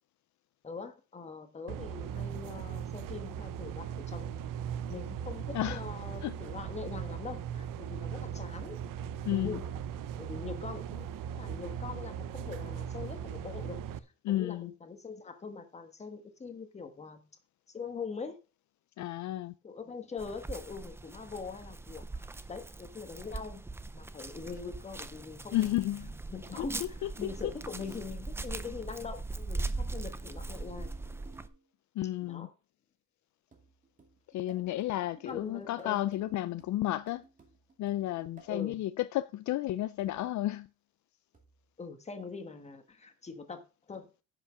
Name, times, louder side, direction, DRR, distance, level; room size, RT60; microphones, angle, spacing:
voice 1, 0.6-4.4 4.9-8.8 9.3-9.6 10.2-11.1 11.4-13.8 14.3-17.2 17.7-18.4 19.6-25.7 26.3-30.9 32.2-32.5 35.2-36.0 38.5-38.8 41.8-43.6 43.9-44.1, left 5 dB, 20° left, 1.3 m, -42 dB
sound 1, 1.7-14.0, right 9 dB, 90° right, 0.8 m, -39 dB
voice 2, 9.3-9.6 14.2-14.7 19.0-19.6 25.5-26.2 26.6-27.5 32.0-32.5 34.3-37.2 37.8-40.7, left 14 dB, 65° left, 0.4 m, -32 dB
sound 2, 20.2-31.5, right 3 dB, 10° right, 0.4 m, -40 dB
sound 3, 26.5-28.2 29.7-31.7 33.5-38.7 40.0-40.3 41.3-41.7, right 3 dB, 25° right, 2.3 m, -58 dB
9.9 x 6.1 x 5.7 m
cardioid pair, 170°, 32 cm